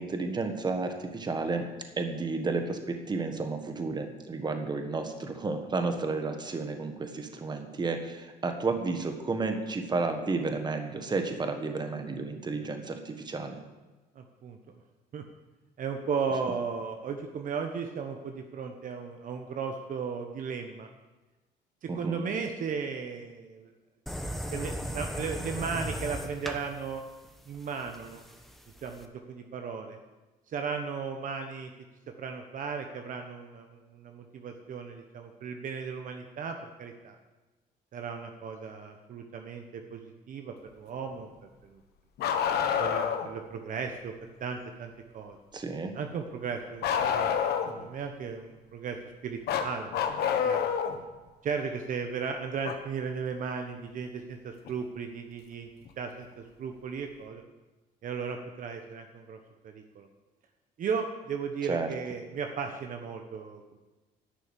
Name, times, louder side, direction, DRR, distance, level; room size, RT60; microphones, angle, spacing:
voice 1, 0.0-1.7 2.0-13.6 21.9-22.2 45.5-45.9 61.7-61.9, right 3 dB, 25° right, 6 dB, 1.5 m, -32 dB
voice 2, 14.1-14.6 15.1-15.2 15.8-20.9 21.8-23.7 24.5-27.0 27.5-28.2 28.8-30.0 30.5-31.7 32.2-37.2 37.9-41.3 41.6-41.8 42.8-45.4 45.9-47.4 47.6-50.6 51.4-55.7 56.0-57.4 58.0-60.1 60.8-63.8, right 5 dB, 50° right, 5 dB, 1.1 m, -36 dB
sound 1, 24.1-29.0, equal, ahead, 1.1 m, -37 dB
Bark, 42.2-43.3 46.8-47.9 49.5-51.0 52.6-52.7 54.7-54.8 55.9-56.0, left 8 dB, 75° left, 1.2 m, -27 dB
11.0 x 6.4 x 8.2 m, 1.2 s
cardioid pair, 110°, 17 cm